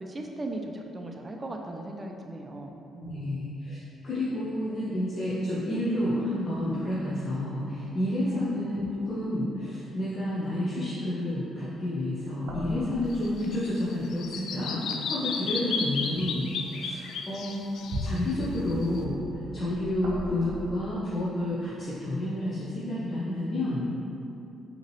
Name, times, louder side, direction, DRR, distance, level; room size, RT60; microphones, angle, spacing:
voice 1, 0.0-3.4 8.3-8.4 15.6-16.0, right 2 dB, 25° right, 2 dB, 0.5 m, -38 dB
voice 2, 3.0-3.8 4.0-17.6 18.0-19.2 19.5-23.9, left 1 dB, 40° left, -9 dB, 0.8 m, -30 dB
sound 1, 7.2-7.9 8.3-9.1 12.1-14.1 14.9-16.0 16.6-16.7 17.4-20.9, equal, 70° right, 0.6 m, -39 dB
Bird vocalization bird call bird song, 13.1-19.0, left 5 dB, 75° left, 0.3 m, -34 dB
5.4 x 2.9 x 3.1 m, 2.9 s
cardioid pair, 90°, 0 cm